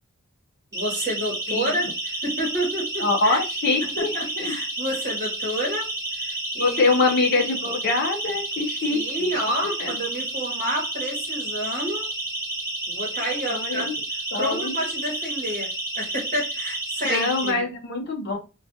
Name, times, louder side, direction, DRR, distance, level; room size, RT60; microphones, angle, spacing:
Siren, 0.7-17.5, right 2 dB, 15° right, 0.9 m, -31 dB
voice 1, 0.7-3.4 3.8-5.9 6.1-7.0 8.9-12.1 12.9-13.9 14.4-15.7 16.0-17.6, equal, 35° right, -2 dB, 1.0 m, -29 dB
voice 2, 3.0-4.6 6.6-9.3 9.6-9.9 13.5-13.9 14.3-14.7 17.0-18.4, left 3 dB, 50° left, 2 dB, 0.6 m, -24 dB
2.3 x 2.3 x 2.6 m, 0.30 s
head